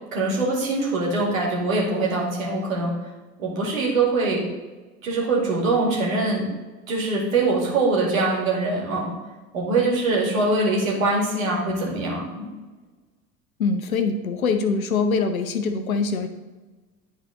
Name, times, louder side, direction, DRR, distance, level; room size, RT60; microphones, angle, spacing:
voice 1, 0.1-2.9 3.4-4.4 5.0-6.5 6.9-9.1 9.5-12.5, right 3 dB, 70° right, -3 dB, 2.3 m, -23 dB
voice 2, 13.6-16.3, left 4 dB, 75° left, 8 dB, 0.8 m, -23 dB
11.0 x 4.1 x 3.8 m, 1.2 s
figure-of-eight pair, 65°, 42 cm